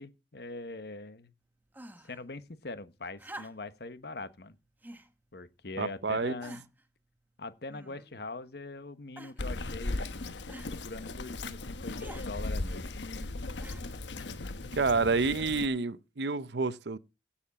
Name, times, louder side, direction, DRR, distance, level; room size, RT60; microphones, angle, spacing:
voice 1, 0.0-1.3 2.0-4.6 5.3-6.7 7.4-10.0 10.7-13.0, left 2 dB, 65° left, 1.2 m, -42 dB
sound 1, 1.7-2.2 3.2-3.8 4.8-5.1 5.8-5.9 6.4-6.9 7.7-8.2 9.2-9.5 10.5-10.7 12.0-12.3 13.6-14.1 15.1-15.2, right 1 dB, 10° right, 1.0 m, -48 dB
voice 2, 5.8-6.3 14.8-17.0, right 4 dB, 70° right, 0.7 m, -29 dB
Bird vocalization bird call bird song, 9.4-15.7, left 2 dB, 85° left, 1.2 m, -37 dB
16.5 x 7.2 x 4.2 m
head